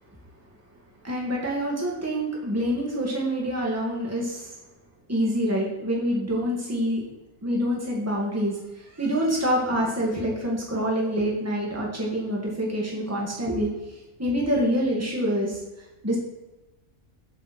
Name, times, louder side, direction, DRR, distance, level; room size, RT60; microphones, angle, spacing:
voice 1, 1.0-4.5 5.1-7.0 7.4-15.6 16.0-16.2, equal, 10° right, -3 dB, 2.1 m, -26 dB
7.9 x 7.3 x 4.5 m, 1.0 s
omnidirectional pair, 1.4 m